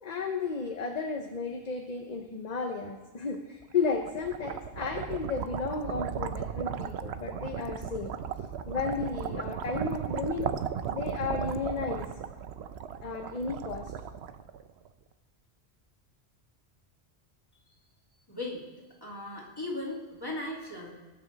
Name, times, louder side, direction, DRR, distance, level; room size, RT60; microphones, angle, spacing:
voice 1, 0.0-8.1 8.7-10.6 10.9-12.1 13.0-13.9, left 4 dB, 45° left, 4 dB, 0.8 m, -33 dB
sound 1, 3.7-14.9, right 8 dB, 80° right, 0.9 m, -36 dB
voice 2, 18.3-18.6 19.0-20.9, left 2 dB, 20° left, -3 dB, 2.5 m, -37 dB
19.5 x 6.7 x 4.0 m, 1.3 s
omnidirectional pair, 1.1 m